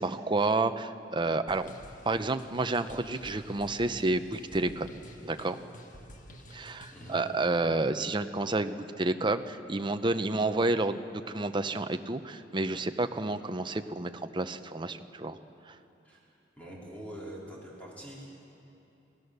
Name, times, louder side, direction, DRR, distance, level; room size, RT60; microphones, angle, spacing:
voice 1, 0.0-1.7 2.1-4.9 5.2-5.6 6.5-15.4 15.7-15.8, right 2 dB, 25° right, 9 dB, 0.7 m, -30 dB
sound 1, 1.5-7.3, equal, 45° left, 1.5 m, -50 dB
voice 2, 6.9-7.2 16.0-18.4, equal, 10° left, -5 dB, 4.0 m, -45 dB
27.5 x 17.5 x 6.7 m, 2.9 s
head